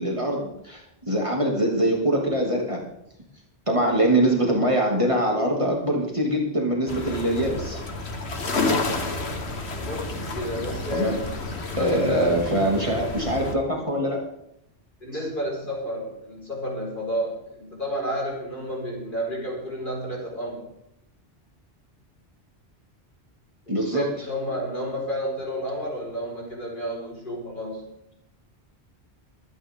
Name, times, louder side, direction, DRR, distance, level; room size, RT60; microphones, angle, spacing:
voice 1, 0.0-2.8 3.7-7.8 10.9-11.2 11.8-14.2 23.7-24.3, right 1 dB, 30° right, -2 dB, 2.6 m, -23 dB
sound 1, 6.9-13.5, left 2 dB, 70° left, 1.8 m, -30 dB
voice 2, 9.8-11.2 11.7-12.3 15.0-20.7 23.7-27.9, equal, 50° left, -2 dB, 5.2 m, -31 dB
23.0 x 9.7 x 3.7 m, 0.78 s
omnidirectional pair, 1.1 m